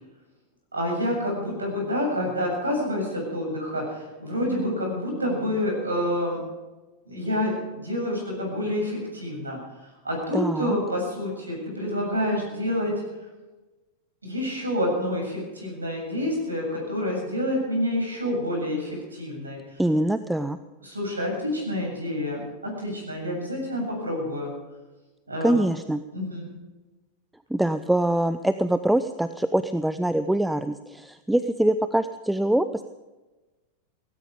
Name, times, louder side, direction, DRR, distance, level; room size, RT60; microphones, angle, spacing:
voice 1, 0.7-6.4 7.1-9.6 10.0-12.9 14.2-19.6 20.8-24.5 25.3-25.6 26.1-26.5, left 1 dB, 80° right, 0 dB, 7.3 m, -28 dB
voice 2, 10.3-10.8 19.8-20.6 25.4-26.0 27.5-32.8, right 1 dB, 5° right, 11 dB, 0.6 m, -24 dB
18.0 x 15.5 x 5.1 m, 1.2 s
figure-of-eight pair, 90°, 0 cm